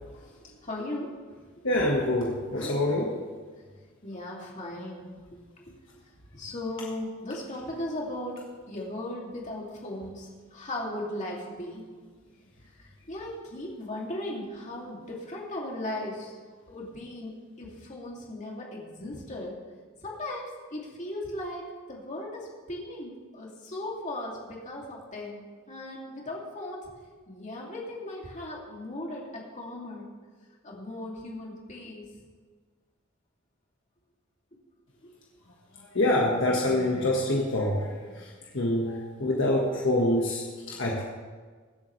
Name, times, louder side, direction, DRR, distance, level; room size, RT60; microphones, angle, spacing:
voice 1, 0.6-1.2 4.0-5.2 6.3-11.9 13.1-16.3 16.7-19.5 20.0-26.9 27.3-30.1 30.6-32.1 35.0-35.1, left 1 dB, 35° left, -3 dB, 2.6 m, -37 dB
voice 2, 1.6-3.1 35.9-38.2 38.5-41.0, left 1 dB, 60° left, -2 dB, 1.5 m, -26 dB
22.5 x 8.4 x 3.2 m, 1.5 s
head